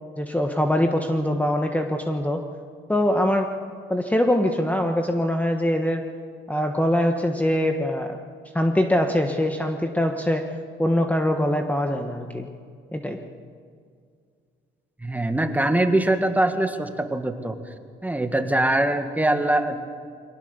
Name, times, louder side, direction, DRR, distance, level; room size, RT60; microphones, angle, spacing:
voice 1, 0.2-2.4 2.9-3.5 3.9-6.0 6.5-8.2 8.5-10.4 10.8-12.5 12.9-13.2, left 1 dB, 5° left, 4 dB, 1.3 m, -23 dB
voice 2, 15.0-17.5 18.0-19.8, right 1 dB, 10° right, 7 dB, 1.7 m, -22 dB
23.0 x 18.0 x 6.8 m, 2.2 s
cardioid pair, 90°, 20 cm